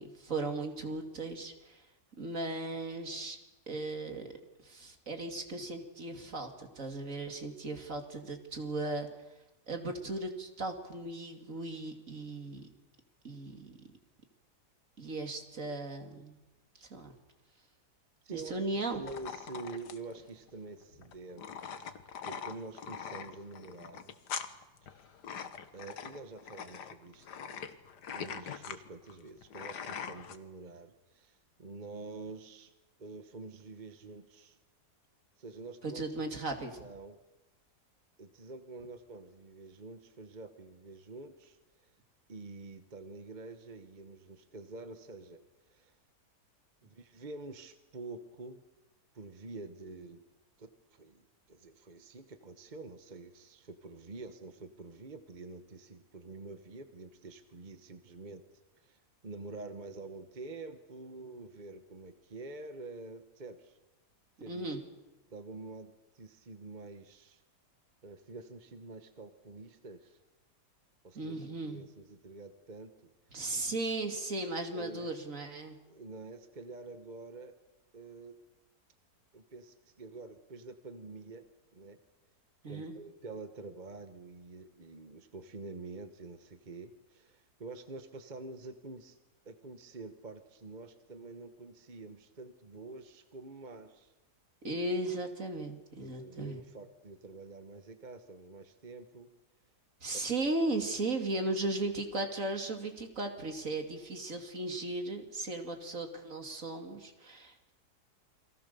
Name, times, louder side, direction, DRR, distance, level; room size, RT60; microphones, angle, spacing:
voice 1, 0.0-1.9 2.2-3.4 3.7-4.3 4.6-9.1 9.7-12.7 13.2-13.8 15.0-16.4 16.8-17.1 18.3-19.0 35.8-36.8 64.5-64.8 71.1-71.9 73.3-75.8 82.6-82.9 94.6-96.6 100.0-107.7, right 2 dB, 50° right, 4 dB, 3.0 m, -36 dB
voice 2, 18.2-18.6 18.9-22.0 22.2-24.2 24.8-25.1 25.7-27.6 28.1-32.7 33.0-34.6 35.4-36.4 36.8-37.2 38.2-41.9 42.3-45.9 46.8-48.7 49.1-50.2 50.6-58.4 58.8-63.8 64.4-64.7 65.3-67.4 68.0-70.2 71.0-73.1 73.3-73.4 74.7-75.1 75.9-77.5 77.9-78.4 79.3-81.4 81.7-82.0 82.7-89.2 89.4-94.1 96.0-99.3 100.1-100.2, right 3 dB, 30° right, 8 dB, 1.2 m, -47 dB
sound 1, 19.1-30.4, left 7 dB, 85° left, 1.9 m, -43 dB
29.0 x 23.0 x 6.9 m, 1.0 s
omnidirectional pair, 1.7 m